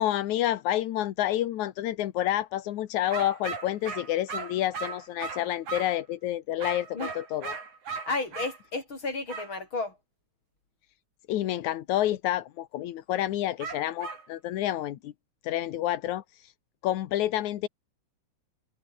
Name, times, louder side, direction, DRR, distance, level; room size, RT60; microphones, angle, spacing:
voice 1, 0.0-7.6 11.3-15.1 15.4-16.2 16.8-17.7, left 13 dB, 85° left, 2.6 m, -29 dB
sound 1, 3.1-6.0 6.6-8.6 9.3-9.5 13.6-14.3, right 5 dB, 90° right, 6.0 m, -37 dB
voice 2, 8.1-10.0, left 3 dB, 40° left, 7.4 m, -32 dB
omnidirectional pair, 3.3 m